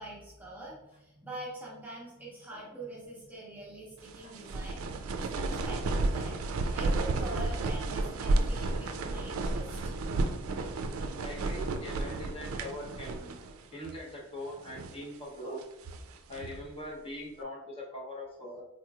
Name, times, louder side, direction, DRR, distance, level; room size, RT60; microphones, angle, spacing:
voice 1, 0.0-4.9 5.2-9.8, right 1 dB, 10° right, -5 dB, 0.7 m, -45 dB
sound 1, 4.1-13.6 13.8-14.0 14.6-15.0 15.6-16.7, right 2 dB, 80° right, 0.4 m, -32 dB
voice 2, 11.2-13.4 13.7-15.6 16.3-18.6, left 1 dB, 25° left, -3 dB, 0.8 m, -42 dB
3.8 x 3.0 x 2.3 m, 0.95 s
head